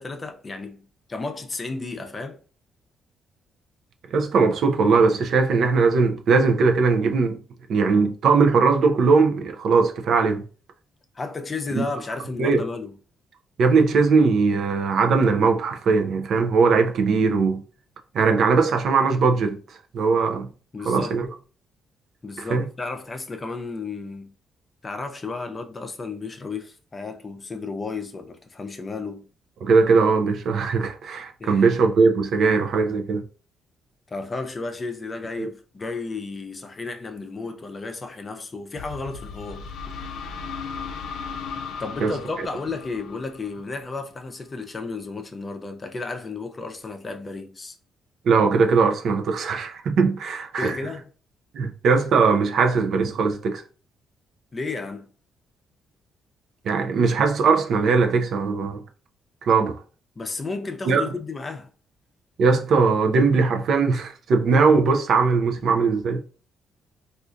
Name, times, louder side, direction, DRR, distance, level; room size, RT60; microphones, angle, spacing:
voice 1, 0.0-2.4 11.1-12.9 20.7-21.1 22.2-24.3 24.8-29.3 31.4-31.6 34.1-39.7 41.8-47.8 50.6-51.1 54.5-55.1 60.2-61.7, left 3 dB, 30° left, 0.5 m, -33 dB
voice 2, 4.1-7.4 7.7-10.4 11.7-11.9 12.4-12.6 13.6-17.6 18.1-20.5 20.9-21.3 22.4-22.6 29.6-33.2 35.4-35.5 42.0-42.1 48.2-50.8 51.5-53.6 56.6-58.8 59.4-59.8 60.9-61.0 62.4-66.2, right 4 dB, 65° right, 0.5 m, -20 dB
sound 1, 38.8-44.4, left 5 dB, 80° left, 0.4 m, -36 dB
3.6 x 2.4 x 2.5 m
cardioid pair, 90°, 0 cm